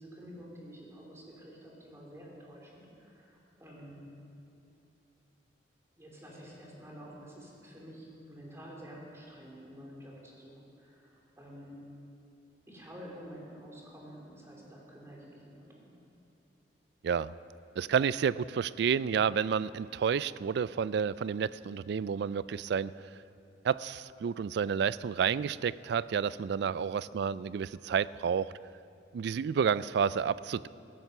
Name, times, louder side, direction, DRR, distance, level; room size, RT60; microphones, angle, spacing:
voice 1, 0.0-4.2 6.0-11.8 12.7-16.0, equal, 15° right, -3 dB, 3.3 m, -49 dB
voice 2, 17.0-17.3 17.8-22.9 23.6-28.5 29.1-30.7, right 7 dB, 65° right, 18 dB, 0.3 m, -30 dB
15.5 x 14.0 x 5.5 m, 2.9 s
head